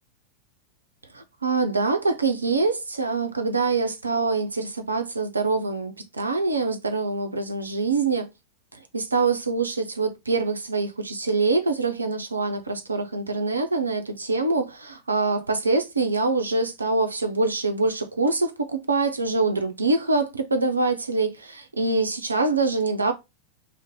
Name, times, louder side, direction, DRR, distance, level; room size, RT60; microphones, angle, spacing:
voice 1, 1.1-8.3 8.9-23.1, right 3 dB, 80° right, 0.4 m, -24 dB
2.5 x 2.0 x 3.6 m
figure-of-eight pair, 90°, 0 cm